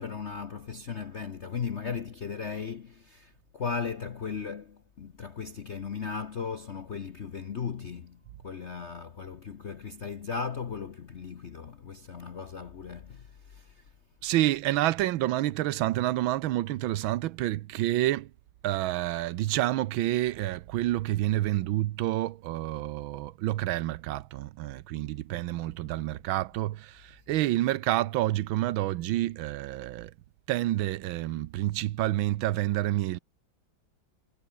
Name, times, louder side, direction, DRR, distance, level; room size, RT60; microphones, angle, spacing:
voice 1, 0.0-13.9, left 6 dB, 45° left, 1.0 m, -37 dB
voice 2, 14.2-18.3 18.6-30.1 30.5-33.2, right 15 dB, 90° right, 1.5 m, -28 dB
omnidirectional pair, 2.2 m